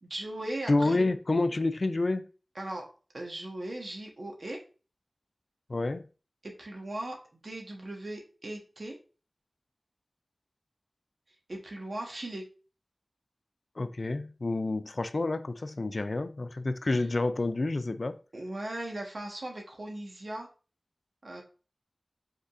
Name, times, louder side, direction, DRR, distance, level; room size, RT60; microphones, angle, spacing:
voice 1, 0.0-1.0 2.5-2.9 3.1-4.6 6.4-9.0 11.5-12.4 18.3-20.5 21.2-21.4, right 1 dB, 70° right, 1.2 m, -38 dB
voice 2, 0.7-2.3 5.7-6.0 13.8-18.2, left 2 dB, 70° left, 0.4 m, -29 dB
5.4 x 3.7 x 2.5 m
wide cardioid pair, 45°, 0 cm